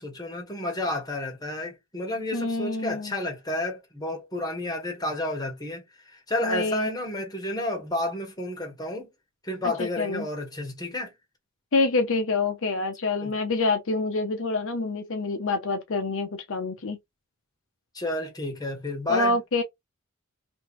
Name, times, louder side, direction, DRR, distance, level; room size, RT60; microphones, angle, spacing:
voice 1, 0.0-9.1 9.4-11.1 13.2-13.3 17.9-19.4, left 1 dB, 20° left, 1.4 m, -31 dB
voice 2, 2.3-3.1 6.4-6.9 9.6-10.3 11.7-17.0 19.1-19.6, left 3 dB, 65° left, 0.7 m, -26 dB
3.2 x 3.0 x 3.0 m
head